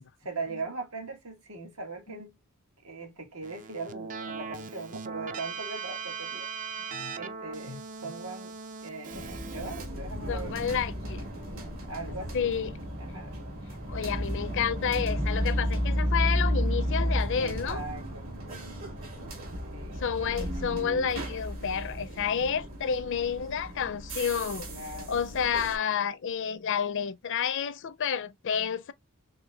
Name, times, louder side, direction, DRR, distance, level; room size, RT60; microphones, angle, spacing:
voice 1, 0.2-2.4 2.8-6.5 7.2-10.7 11.9-12.6 13.0-13.4 17.3-18.3 19.7-20.3 24.7-25.2, right 3 dB, 85° right, 1.6 m, -40 dB
Keyboard (musical), 3.4-9.9, right 5 dB, 35° right, 0.4 m, -39 dB
sound 1, 9.1-25.8, equal, 70° right, 1.9 m, -33 dB
voice 2, 10.3-11.3 12.3-12.7 13.9-17.8 20.0-24.7 25.1-28.9, left 7 dB, 60° left, 0.5 m, -30 dB
4.3 x 3.2 x 2.2 m
head